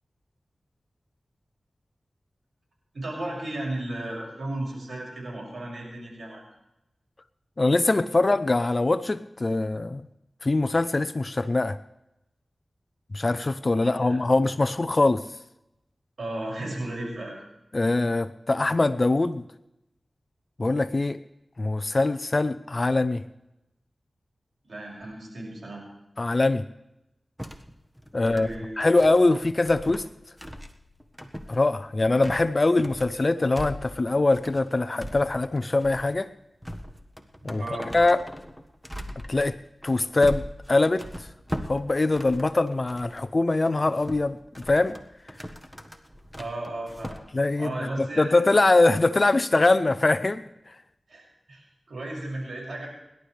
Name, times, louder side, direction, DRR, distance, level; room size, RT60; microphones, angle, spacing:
voice 1, 2.9-6.4 14.0-14.2 16.2-17.4 24.6-25.8 28.2-28.9 37.4-37.9 46.3-47.2 47.6-48.4 51.1-52.9, right 1 dB, 80° right, -2 dB, 6.4 m, -35 dB
voice 2, 7.6-10.0 10.4-11.8 13.1-15.2 17.7-19.4 20.6-21.2 21.6-23.2 26.2-26.6 28.1-28.5 28.8-30.0 31.5-36.3 37.4-37.6 37.9-38.2 39.3-39.5 39.8-41.0 41.7-44.4 44.7-45.0 47.3-50.4, left 2 dB, 45° left, 13 dB, 0.6 m, -23 dB
sound 1, 27.4-43.3 43.7-47.2, equal, ahead, 1.5 m, -40 dB
29.0 x 11.5 x 3.4 m, 0.88 s
cardioid pair, 45°, 0 cm